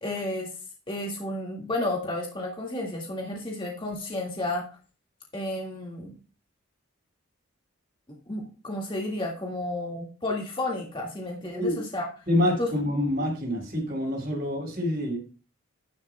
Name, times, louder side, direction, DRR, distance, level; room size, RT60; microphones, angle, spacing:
voice 1, 0.0-0.5 0.9-4.7 5.3-6.1 8.3-12.1 12.6-12.7, left 2 dB, 25° left, -1 dB, 1.9 m, -32 dB
voice 2, 12.3-15.2, left 1 dB, 45° right, -3 dB, 5.1 m, -26 dB
11.5 x 11.0 x 2.2 m, 0.35 s
head